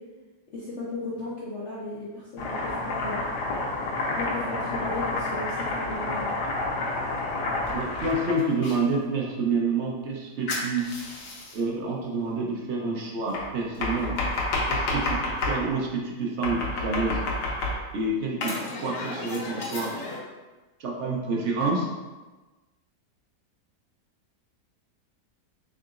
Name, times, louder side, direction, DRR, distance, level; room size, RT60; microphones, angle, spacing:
voice 1, 0.5-3.3 4.2-6.3, left 2 dB, 60° left, -7 dB, 0.8 m, -35 dB
Domestic sounds home sounds, 2.4-8.8 10.5-11.6 13.3-15.6 16.4-18.0 18.4-20.2, left 2 dB, 85° left, 1.3 m, -30 dB
voice 2, 7.7-10.9 11.5-14.2 14.7-15.2 15.5-17.2 17.9-19.9 20.8-21.9, right 3 dB, 60° right, -2 dB, 0.8 m, -28 dB
3.8 x 3.7 x 2.4 m, 1.2 s
omnidirectional pair, 1.7 m